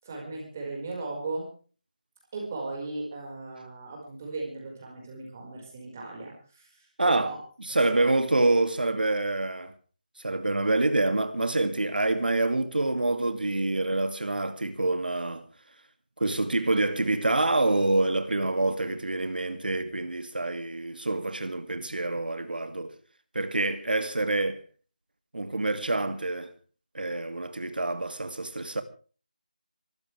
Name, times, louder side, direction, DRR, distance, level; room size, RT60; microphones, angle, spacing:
voice 1, 0.0-1.5 2.3-7.4 7.7-8.0, right 3 dB, 15° right, 5.1 m, -37 dB
voice 2, 7.0-7.3 7.7-9.7 10.2-15.4 16.2-22.9 23.3-24.6 25.3-26.5 26.9-28.8, right 2 dB, 75° right, 2.4 m, -26 dB
25.0 x 15.0 x 3.4 m
figure-of-eight pair, 180°, 5 cm